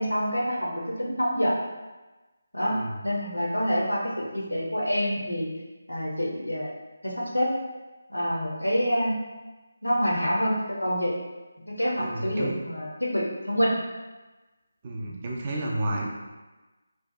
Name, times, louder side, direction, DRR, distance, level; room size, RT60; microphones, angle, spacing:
voice 1, 0.0-1.5 2.5-5.5 5.9-6.7 7.0-7.5 8.1-9.2 9.8-11.2 11.7-13.8, equal, 90° left, -3 dB, 0.7 m, -27 dB
voice 2, 12.0-12.5 14.8-16.1, right 1 dB, 30° right, -2 dB, 0.4 m, -31 dB
2.6 x 2.2 x 2.5 m, 1.2 s
figure-of-eight pair, 155°, 0 cm